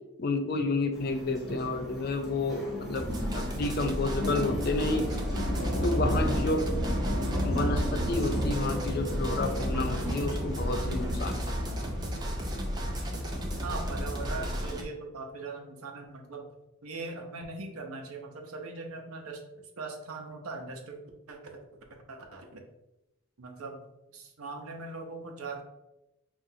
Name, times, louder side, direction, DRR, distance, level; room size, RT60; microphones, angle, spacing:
voice 1, 0.2-3.1 3.3-5.1 5.8-6.7 7.4-11.6, left 2 dB, 45° left, 5 dB, 0.4 m, -30 dB
sound 1, 0.9-14.6, equal, ahead, 0.8 m, -33 dB
voice 2, 1.1-1.4 13.6-16.5 16.8-19.4 19.8-21.0 21.3-21.4 22.1-22.6 23.4-23.8 24.1-25.6, right 3 dB, 80° right, 3 dB, 0.7 m, -40 dB
sound 2, 3.0-14.8, equal, 20° right, 0.4 m, -34 dB
5.8 x 2.5 x 2.7 m, 0.92 s
head